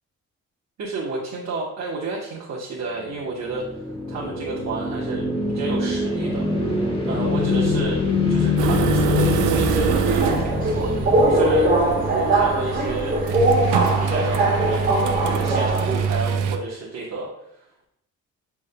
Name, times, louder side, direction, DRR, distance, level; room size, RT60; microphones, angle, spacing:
voice 1, 0.8-8.0 8.3-11.7 12.1-13.1 13.5-14.9 15.2-17.6, right 3 dB, 60° right, -5 dB, 1.1 m, -31 dB
sound 1, 3.0-12.3, left 3 dB, 20° left, 1.1 m, -24 dB
sound 2, 8.6-16.6, right 7 dB, 90° right, 0.5 m, -25 dB
Subway metro underground, 9.4-16.2, right 1 dB, 30° right, 1.4 m, -21 dB
6.6 x 3.5 x 2.2 m, 0.78 s
cardioid pair, 90°, 30 cm